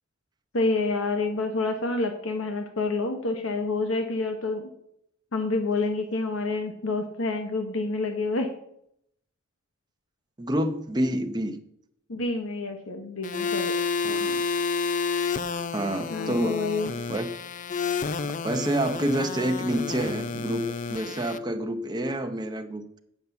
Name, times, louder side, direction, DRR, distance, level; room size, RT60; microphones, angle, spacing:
voice 1, 0.5-4.7 5.3-8.5 12.1-13.7 16.1-16.9, left 3 dB, 75° left, 5 dB, 1.1 m, -28 dB
voice 2, 10.4-11.6 14.0-14.4 15.7-16.5 17.1-17.3 18.2-23.0, right 1 dB, 20° right, 5 dB, 0.7 m, -28 dB
sound 1, 13.2-21.4, left 5 dB, 40° left, 0.4 m, -30 dB
8.3 x 6.0 x 6.9 m, 0.73 s
head